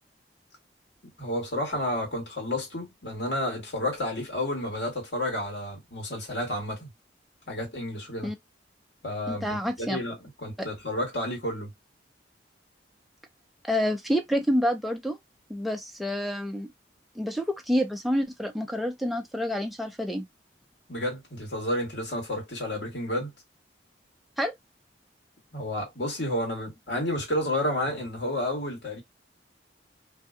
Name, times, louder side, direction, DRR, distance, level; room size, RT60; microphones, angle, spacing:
voice 1, 1.2-6.9 7.5-8.3 9.0-11.7 20.9-23.3 25.5-29.0, left 1 dB, 70° left, 1.6 m, -31 dB
voice 2, 9.3-10.0 13.6-15.2 15.5-16.7 17.2-20.3 24.4-24.5, equal, ahead, 0.5 m, -28 dB
2.7 x 2.2 x 2.4 m
head